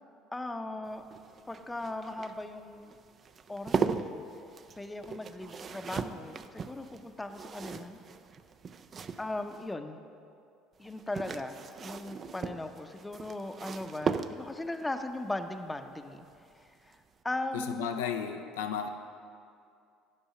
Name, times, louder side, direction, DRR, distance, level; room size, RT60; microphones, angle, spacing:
voice 1, 0.3-1.0 1.5-2.9 3.5-4.2 4.8-8.0 9.2-10.0 10.8-16.3 16.5-17.0 17.2-18.0, left 2 dB, 15° left, 7 dB, 0.6 m, -38 dB
sound 1, 0.9-9.7 10.8-14.7 16.4-16.7 16.9-17.0, right 5 dB, 40° right, 0.4 m, -38 dB
voice 2, 17.5-18.9, left 7 dB, 85° left, 5 dB, 0.5 m, -34 dB
10.0 x 5.5 x 5.6 m, 2.5 s
hypercardioid pair, 70°, 0 cm